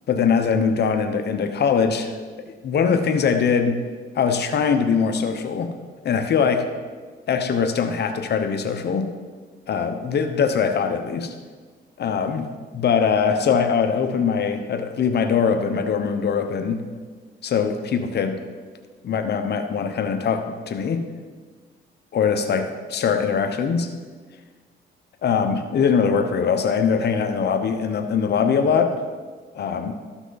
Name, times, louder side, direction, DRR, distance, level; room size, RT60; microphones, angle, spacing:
voice 1, 0.1-2.1 2.6-3.8 4.1-5.7 6.0-6.7 7.3-9.1 9.7-11.3 12.0-12.5 12.7-16.8 17.4-18.4 19.0-21.0 22.1-23.9 25.2-29.0 29.5-29.9, left 6 dB, 55° left, 7 dB, 0.9 m, -22 dB
13.5 x 6.0 x 4.0 m, 1.5 s
cardioid pair, 90°, 20 cm